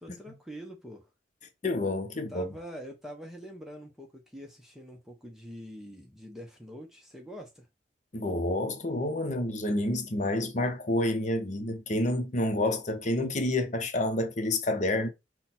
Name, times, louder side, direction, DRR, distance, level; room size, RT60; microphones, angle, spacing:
voice 1, 0.0-1.1 2.3-7.7, equal, ahead, 0.7 m, -44 dB
voice 2, 1.6-2.5 8.1-15.1, left 1 dB, 40° left, 0.8 m, -29 dB
5.7 x 2.2 x 4.2 m
head